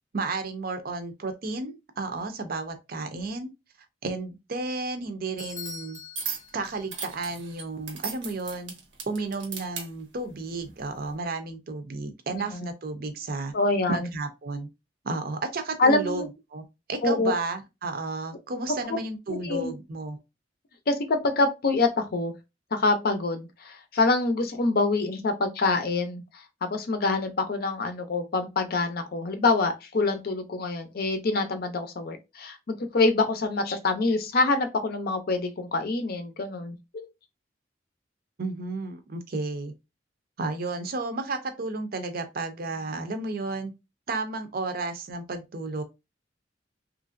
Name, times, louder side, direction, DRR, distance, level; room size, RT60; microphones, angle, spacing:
voice 1, 0.1-3.5 4.0-6.0 6.5-8.7 9.1-13.5 13.9-14.7 15.0-16.2 16.5-16.6 16.9-20.2 38.4-39.7 40.4-43.7 44.1-45.8, right 3 dB, 55° right, 0.6 m, -32 dB
Bell / Doorbell, 5.4-7.2, left 4 dB, 15° left, 0.7 m, -43 dB
sound 1, 6.2-6.5 6.9-9.9 10.7-10.9, right 6 dB, 85° right, 0.9 m, -36 dB
voice 2, 12.3-12.7 13.5-14.1 15.8-16.3 17.0-17.3 18.9-19.0 19.3-19.7 20.9-22.3 22.7-36.8, left 3 dB, 55° left, 0.5 m, -26 dB
3.1 x 2.5 x 2.5 m
head